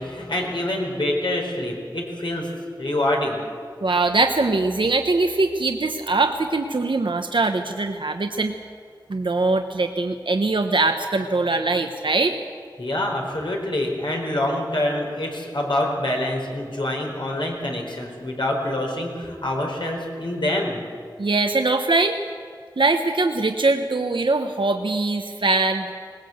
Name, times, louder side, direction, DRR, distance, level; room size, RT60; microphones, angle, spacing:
voice 1, 0.0-2.5 2.8-3.4 12.8-20.8, left 1 dB, 75° left, 0 dB, 4.6 m, -26 dB
voice 2, 3.8-8.5 9.1-12.4 21.2-22.3 22.8-25.9, right 3 dB, 85° right, 5 dB, 0.9 m, -22 dB
20.5 x 19.0 x 8.0 m, 2.1 s
wide cardioid pair, 50°, 8 cm